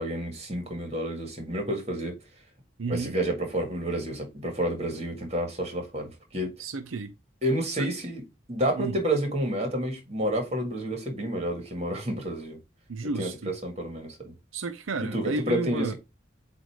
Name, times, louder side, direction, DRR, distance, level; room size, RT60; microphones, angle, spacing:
voice 1, 0.0-2.2 2.9-6.5 7.4-8.2 8.5-12.6 13.1-14.3 15.0-15.9, right 1 dB, 35° right, 1.7 m, -30 dB
voice 2, 2.8-3.1 6.6-7.1 7.8-7.9 8.8-9.0 12.9-13.5 14.5-15.9, right 3 dB, 90° right, 0.6 m, -32 dB
7.9 x 2.6 x 4.7 m
head